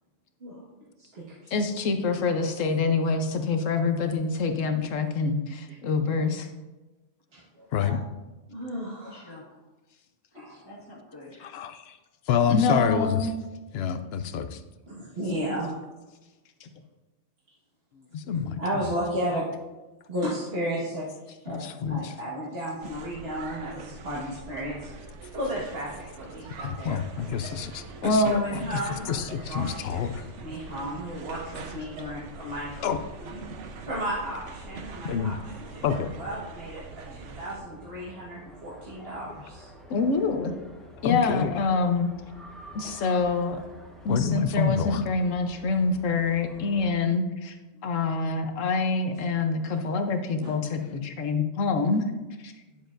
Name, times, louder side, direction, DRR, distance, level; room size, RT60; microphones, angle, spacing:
voice 1, 1.0-1.6 7.3-8.0 8.5-9.3 10.3-10.6 14.9-15.7 18.3-19.4 20.1-21.0 21.4-24.9 25.3-25.9 26.1-27.0 28.3-32.8 33.2-33.4 33.8-36.8 37.1-39.7 42.8-42.9 49.6-49.8 50.4-50.5 52.7-52.8, equal, 55° right, -7 dB, 1.7 m, -34 dB
voice 2, 1.5-6.5 12.5-13.3 16.6-16.7 28.0-28.4 29.0-29.1 39.9-40.5 41.0-42.1 42.7-43.6 44.0-47.6 47.8-52.0 52.4-52.5, left 4 dB, 90° left, 6 dB, 1.2 m, -26 dB
voice 3, 9.1-9.7 10.3-11.6 13.9-14.1, left 1 dB, 20° left, -4 dB, 1.6 m, -49 dB
voice 4, 11.5-12.0 12.3-13.3 13.7-14.6 18.1-18.6 21.5-22.1 26.6-28.6 29.1-30.2 32.8-33.0 35.0-35.4 35.8-36.1 41.0-41.5 44.1-45.0, left 7 dB, 65° left, 10 dB, 0.7 m, -28 dB
sound 1, 22.8-37.6, right 4 dB, 75° right, 1.0 m, -43 dB
sound 2, 27.2-46.9, equal, ahead, 1.0 m, -49 dB
10.0 x 7.1 x 2.5 m, 1.1 s
omnidirectional pair, 1.3 m